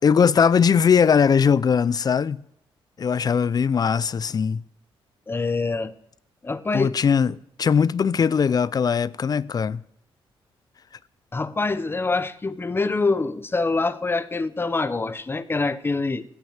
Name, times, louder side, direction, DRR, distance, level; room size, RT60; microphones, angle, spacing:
voice 1, 0.0-2.4 3.0-4.6 6.7-9.8, left 6 dB, 40° left, 0.5 m, -20 dB
voice 2, 5.3-5.9 6.4-6.9 11.3-16.2, left 3 dB, 25° left, 0.9 m, -25 dB
16.0 x 9.3 x 7.3 m
cardioid pair, 80°, 10 cm